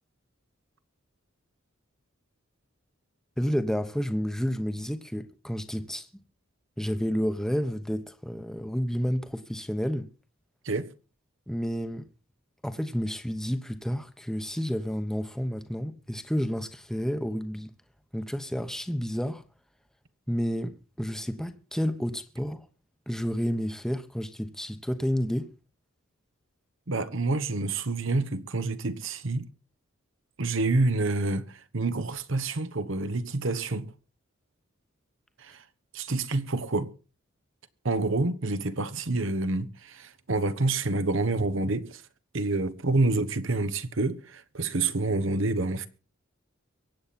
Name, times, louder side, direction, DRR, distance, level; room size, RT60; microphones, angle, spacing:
voice 1, 3.4-6.1 6.8-10.1 11.5-12.1 12.6-17.7 18.1-19.4 20.3-22.7 23.1-25.5, equal, 5° left, 1.0 m, -30 dB
voice 2, 26.9-29.5 30.4-33.9 35.4-35.6 35.9-36.9 37.8-42.0 42.3-45.9, right 2 dB, 70° right, 1.1 m, -28 dB
23.5 x 8.6 x 4.2 m
head